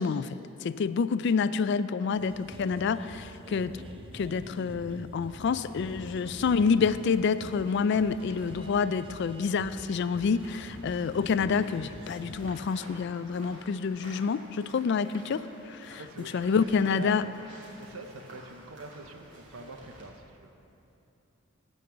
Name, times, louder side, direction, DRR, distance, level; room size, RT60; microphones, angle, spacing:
voice 1, 0.0-3.7 4.1-16.0 16.3-17.2, left 5 dB, 55° left, 14 dB, 0.3 m, -28 dB
sound 1, 2.2-12.5, right 1 dB, 25° right, 0.7 m, -46 dB
sound 2, 5.3-20.0, right 1 dB, 60° right, 2.7 m, -52 dB
voice 2, 16.0-17.3 17.8-20.5, right 2 dB, 80° right, 6 dB, 0.8 m, -44 dB
12.5 x 5.4 x 7.8 m, 2.8 s
head